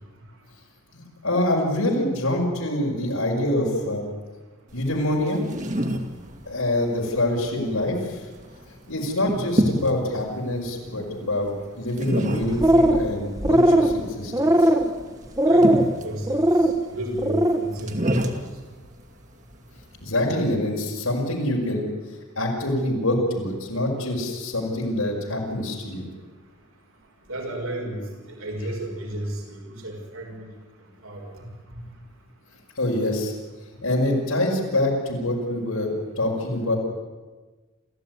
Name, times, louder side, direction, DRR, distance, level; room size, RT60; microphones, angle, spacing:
voice 1, 0.9-4.0 4.7-5.4 6.5-8.2 8.9-14.3 14.6-14.7 20.0-21.9 22.4-26.1 32.8-33.3 33.8-35.9 36.2-36.8, left 1 dB, 90° left, -2 dB, 5.8 m, -25 dB
sound 1, 4.7-20.5, right 1 dB, 35° right, 2.2 m, -31 dB
sound 2, 12.4-13.1 13.4-13.9 14.3-14.9 15.4-15.9 16.3-16.7 17.1-17.6, right 1 dB, 15° right, 1.5 m, -18 dB
voice 2, 15.4-16.4 16.9-18.3 27.3-28.0 28.4-30.3 31.0-31.3, right 1 dB, 80° right, 1 dB, 5.9 m, -32 dB
29.0 x 14.5 x 9.6 m, 1.3 s
head